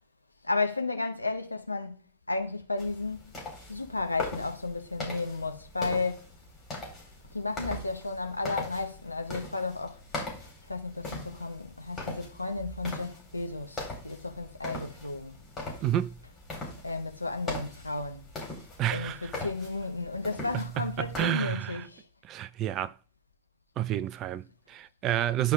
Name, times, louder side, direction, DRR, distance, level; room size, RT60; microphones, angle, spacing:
voice 1, 0.4-2.0 2.3-3.3 3.7-6.2 7.3-10.0 10.7-15.4 16.8-18.2 18.9-22.0, left 3 dB, 85° left, 1.1 m, -33 dB
sound 1, 2.8-21.2, left 2 dB, 20° left, 4.2 m, -41 dB
voice 2, 15.8-16.1 18.8-19.3 20.5-21.8 22.3-22.9 23.8-25.5, right 12 dB, 35° right, 0.5 m, -30 dB
10.5 x 4.7 x 3.6 m
figure-of-eight pair, 90°, 0 cm